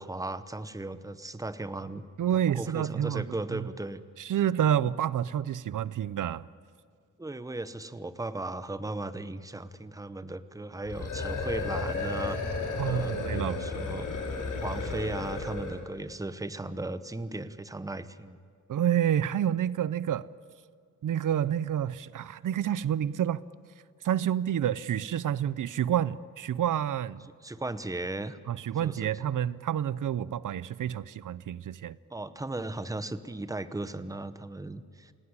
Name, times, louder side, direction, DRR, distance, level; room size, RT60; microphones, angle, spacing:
voice 1, 0.0-2.1 2.5-4.0 7.2-12.4 12.8-14.1 14.6-18.4 27.4-28.4 28.8-29.3 32.1-35.1, right 2 dB, 10° right, 0.9 m, -36 dB
voice 2, 2.2-3.3 3.5-3.7 4.2-6.5 12.8-13.7 18.7-20.3 21.0-23.4 24.0-27.2 28.5-32.0, right 10 dB, 85° right, 0.6 m, -29 dB
sound 1, 10.8-15.8, left 3 dB, 80° left, 4.5 m, -33 dB
28.0 x 18.0 x 9.7 m
wide cardioid pair, 160°, 31 cm